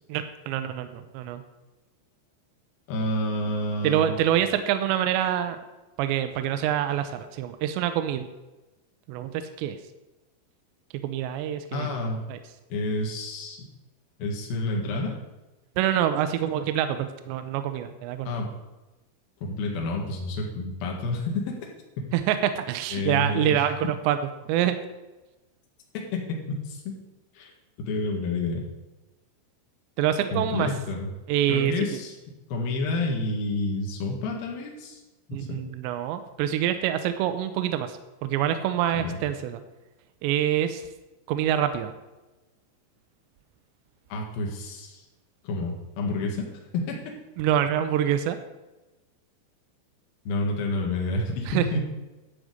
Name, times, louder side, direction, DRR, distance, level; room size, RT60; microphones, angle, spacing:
voice 1, 0.1-1.4 3.8-5.6 6.0-8.3 9.1-9.8 11.0-11.9 12.3-12.4 15.8-18.4 22.1-24.2 24.5-24.8 30.0-30.7 31.3-31.7 35.3-39.6 40.2-40.9 41.3-41.9 47.4-48.4 51.5-51.7, right 10 dB, 80° right, 9 dB, 2.9 m, -26 dB
voice 2, 2.9-4.2 11.7-12.2 12.7-13.7 14.2-15.1 18.2-18.5 19.4-21.5 22.9-23.7 26.1-26.9 27.3-27.5 27.8-28.6 30.3-31.1 31.5-32.2 32.5-35.0 35.4-35.6 38.9-39.2 44.1-45.0 45.4-46.5 46.7-47.1 50.2-51.9, left 2 dB, 60° left, 0 dB, 3.3 m, -29 dB
12.5 x 5.0 x 7.9 m, 1.1 s
omnidirectional pair, 5.2 m